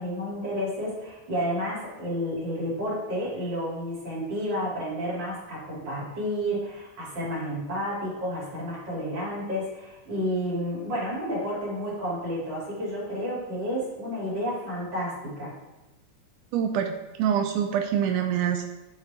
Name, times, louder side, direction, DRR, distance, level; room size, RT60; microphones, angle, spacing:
voice 1, 0.0-15.5, equal, 35° right, -6 dB, 3.4 m, -31 dB
voice 2, 16.5-16.9 17.2-18.7, right 8 dB, 85° right, 5 dB, 2.1 m, -25 dB
10.5 x 5.3 x 3.6 m, 1.0 s
omnidirectional pair, 3.5 m